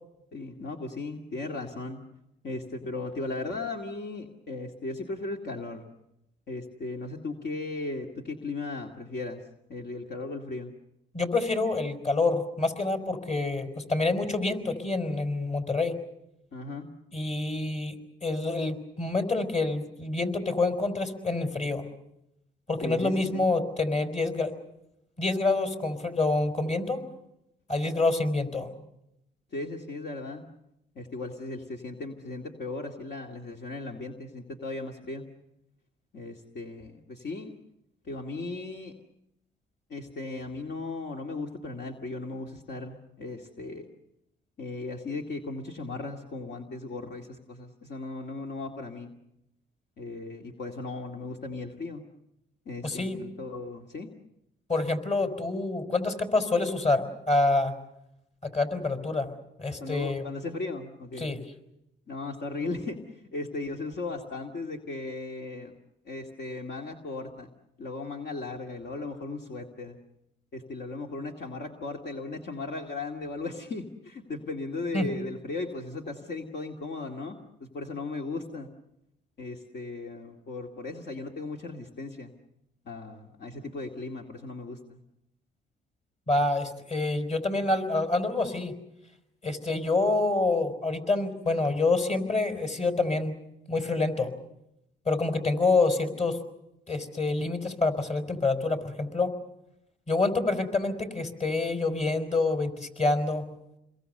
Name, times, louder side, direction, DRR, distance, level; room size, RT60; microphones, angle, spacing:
voice 1, 0.3-2.0 2.4-5.8 6.5-9.4 9.7-10.7 16.5-16.9 22.8-23.5 29.5-30.4 31.0-35.2 36.1-37.5 38.0-38.9 39.9-43.9 44.6-49.1 50.0-52.0 52.7-54.1 59.8-61.3 62.1-65.8 66.0-67.5 67.8-70.0 70.5-78.7 79.4-82.3 82.8-85.0, left 3 dB, 60° left, 2 dB, 2.4 m, -37 dB
voice 2, 11.1-15.9 17.1-17.9 18.2-21.8 22.7-24.5 25.2-27.0 27.7-28.7 52.8-53.2 54.7-57.7 58.4-59.3 59.6-60.2 61.2-61.4 74.9-75.1 86.3-88.7 89.4-93.3 93.7-94.3 95.1-96.4 96.9-99.3 100.1-103.4, left 3 dB, 35° left, 7 dB, 4.7 m, -27 dB
29.0 x 22.0 x 6.8 m, 0.85 s
cardioid pair, 90°, 20 cm